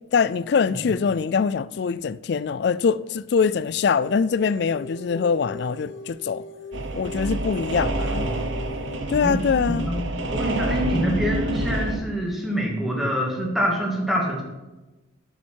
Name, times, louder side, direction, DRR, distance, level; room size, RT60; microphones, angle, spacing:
voice 1, 0.1-6.4 6.9-8.3 9.1-9.9, left 5 dB, 55° left, 0.3 m, -23 dB
sound 1, 3.9-9.0, left 1 dB, 70° left, 1.2 m, -40 dB
sound 2, 6.7-12.0, right 1 dB, 70° right, 1.0 m, -27 dB
voice 2, 7.7-8.5 9.2-9.4 9.8-14.4, equal, ahead, 2.1 m, -26 dB
10.5 x 7.2 x 4.6 m
head